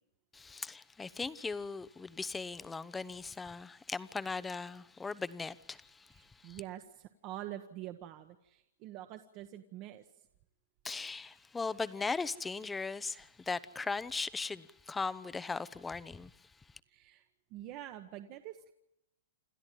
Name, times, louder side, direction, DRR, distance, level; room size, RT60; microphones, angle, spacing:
voice 1, 0.3-6.1 6.4-6.6 10.8-16.3, left 4 dB, 10° left, 0.7 m, -38 dB
voice 2, 6.1-10.0 16.9-17.2 17.5-18.7, right 13 dB, 40° right, 1.2 m, -46 dB
28.5 x 13.0 x 9.2 m
hypercardioid pair, 145°, 0 cm